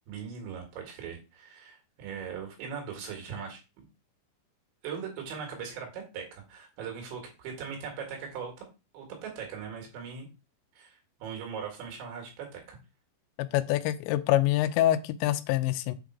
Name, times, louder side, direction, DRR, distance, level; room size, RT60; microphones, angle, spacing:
voice 1, 0.1-3.6 4.8-8.5 8.9-10.3 10.8-12.8, right 6 dB, 85° right, 2 dB, 4.4 m, -40 dB
voice 2, 13.4-16.0, left 14 dB, 85° left, 12 dB, 2.9 m, -26 dB
8.1 x 3.8 x 4.7 m, 0.28 s
omnidirectional pair, 5.1 m